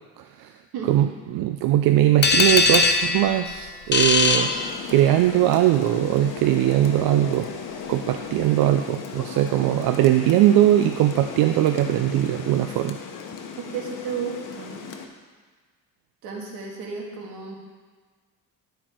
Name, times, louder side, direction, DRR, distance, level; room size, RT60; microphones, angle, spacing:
voice 1, 0.2-0.5 0.9-7.5 7.9-13.0, right 13 dB, 70° right, 7 dB, 0.5 m, -20 dB
voice 2, 0.7-1.1 13.7-14.8 16.2-17.5, right 5 dB, 85° right, -1 dB, 1.9 m, -33 dB
sound 1, 2.2-5.3, left 4 dB, 30° left, 0.7 m, -21 dB
Rain, 4.3-15.1, left 6 dB, 55° left, 1.0 m, -37 dB
12.0 x 4.6 x 4.4 m, 1.5 s
cardioid pair, 90°, 37 cm